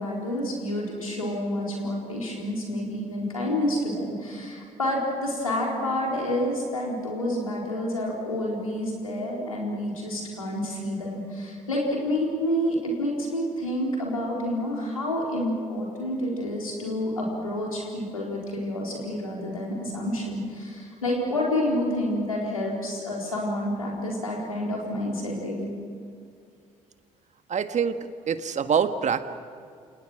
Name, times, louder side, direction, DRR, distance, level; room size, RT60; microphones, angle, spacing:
voice 1, 0.0-25.8, left 1 dB, 90° left, -2 dB, 4.2 m, -29 dB
voice 2, 27.5-28.0 28.3-29.3, right 7 dB, 45° right, 10 dB, 1.6 m, -25 dB
28.5 x 28.0 x 6.3 m, 2.3 s
figure-of-eight pair, 45°, 17 cm